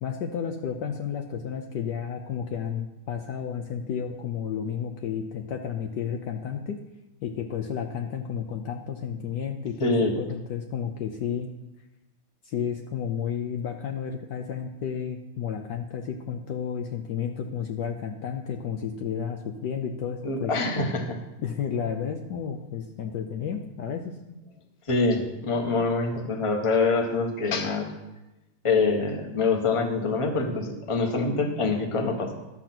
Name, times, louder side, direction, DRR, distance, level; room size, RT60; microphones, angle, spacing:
voice 1, 0.0-6.8 7.2-11.5 12.4-20.5 21.4-24.2, left 7 dB, 65° left, 4 dB, 1.2 m, -32 dB
voice 2, 9.8-10.1 20.2-21.2 24.9-27.9 28.6-32.3, left 3 dB, 20° left, 2 dB, 1.0 m, -25 dB
11.5 x 7.2 x 5.9 m, 0.98 s
omnidirectional pair, 2.2 m